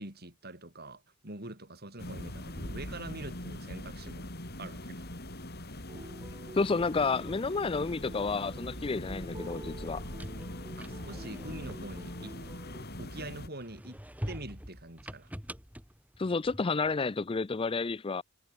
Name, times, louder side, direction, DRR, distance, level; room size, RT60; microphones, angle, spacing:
voice 1, 0.0-4.3 4.6-5.1 10.8-12.4 13.0-14.0 14.3-15.3, right 2 dB, 50° right, 8.0 m, -44 dB
sound 1, 2.0-13.5, left 1 dB, 50° left, 7.0 m, -42 dB
sound 2, 5.9-12.8, right 1 dB, 25° right, 3.2 m, -50 dB
voice 2, 6.5-10.0 16.2-18.2, left 4 dB, 25° left, 0.5 m, -30 dB
sound 3, 10.0-13.1 13.5-16.9, equal, 10° right, 4.4 m, -45 dB
head